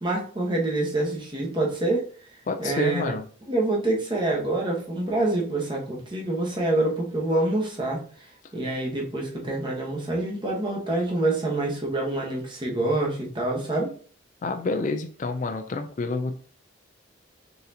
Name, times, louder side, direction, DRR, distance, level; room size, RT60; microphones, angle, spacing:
voice 1, 0.0-2.1 2.6-3.1 3.5-13.9, right 2 dB, 25° right, -2 dB, 1.1 m, -26 dB
voice 2, 2.5-3.3 14.4-16.4, left 3 dB, 40° left, 6 dB, 0.4 m, -28 dB
4.1 x 3.8 x 2.7 m, 0.43 s
head